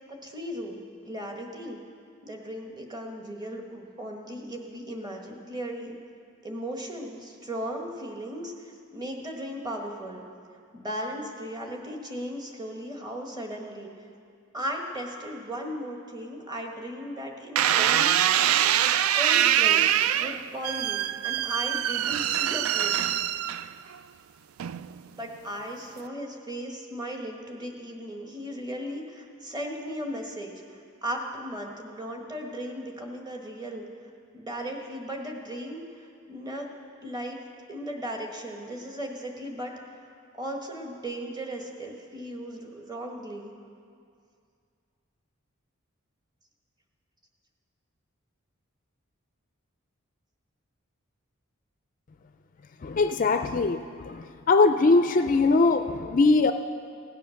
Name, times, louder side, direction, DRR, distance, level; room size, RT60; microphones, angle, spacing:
voice 1, 0.1-1.8 2.2-6.0 6.4-10.2 10.7-13.9 14.5-18.4 19.1-23.1 25.2-33.8 34.3-36.7 37.0-37.4 37.7-39.7 40.3-43.5, equal, 20° right, 1 dB, 1.4 m, -36 dB
sound 1, 17.6-24.0 24.6-25.1, right 11 dB, 85° right, 0.4 m, -24 dB
voice 2, 52.8-53.8 54.0-56.5, left 3 dB, 40° left, 8 dB, 0.4 m, -21 dB
16.5 x 9.2 x 6.4 m, 2.3 s
head